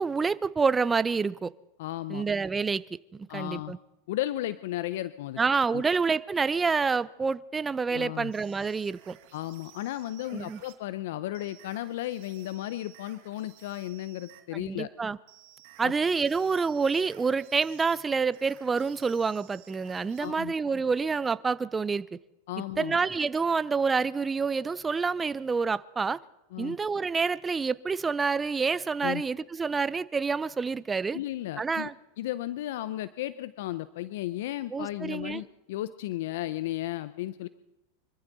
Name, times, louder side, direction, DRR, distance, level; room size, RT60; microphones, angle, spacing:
voice 1, 0.0-1.5 2.1-2.8 3.3-3.8 5.4-9.2 10.3-10.6 14.5-15.2 15.8-22.2 22.8-26.2 26.6-31.2 31.6-31.9 34.7-35.4, right 5 dB, 15° right, 0.5 m, -28 dB
voice 2, 1.8-2.3 3.3-3.7 4.1-5.4 5.7-5.8 7.9-8.3 9.3-14.9 15.8-15.9 20.2-20.5 22.5-23.0 26.5-26.8 29.0-29.2 31.1-31.9 32.2-37.5, left 14 dB, 70° left, 0.5 m, -34 dB
sound 1, 8.3-10.8 11.3-14.5 15.3-20.3, right 14 dB, 60° right, 1.8 m, -55 dB
24.5 x 14.5 x 4.0 m
hypercardioid pair, 120°, 0 cm